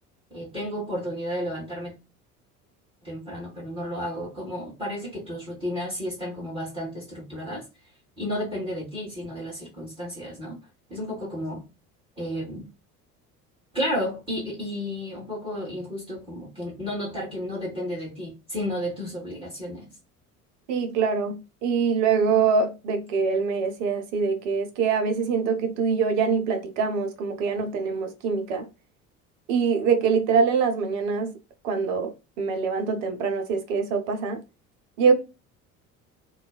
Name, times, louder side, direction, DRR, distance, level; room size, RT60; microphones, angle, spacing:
voice 1, 0.3-1.9 3.0-7.6 8.2-10.6 10.9-11.6 12.2-12.7 13.7-19.9 35.1-35.2, equal, 10° right, 1.7 m, -32 dB
voice 2, 20.7-28.7 29.5-31.3 31.6-34.4 35.0-35.1, right 5 dB, 60° right, 0.8 m, -24 dB
3.0 x 2.3 x 2.3 m
figure-of-eight pair, 60°, 44 cm